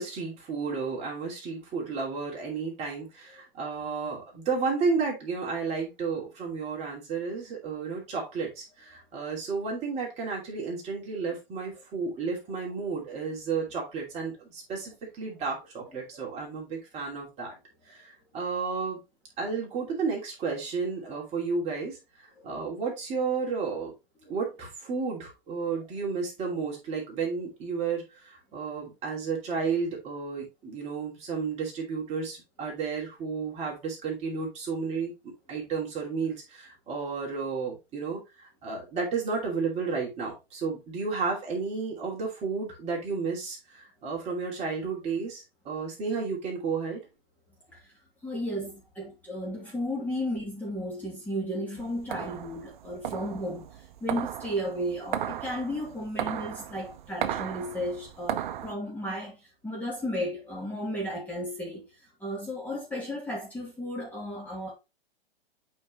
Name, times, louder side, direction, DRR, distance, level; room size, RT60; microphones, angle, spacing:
voice 1, 0.0-17.5 17.9-19.0 19.4-22.0 22.4-23.9 24.3-35.1 35.5-47.0, right 5 dB, 20° right, 2.8 m, -32 dB
voice 2, 48.2-61.9 62.2-64.7, equal, 5° left, 2.5 m, -34 dB
sound 1, 51.8-58.7, right 10 dB, 50° right, 0.8 m, -36 dB
8.4 x 4.8 x 3.0 m
hypercardioid pair, 135°, 30 cm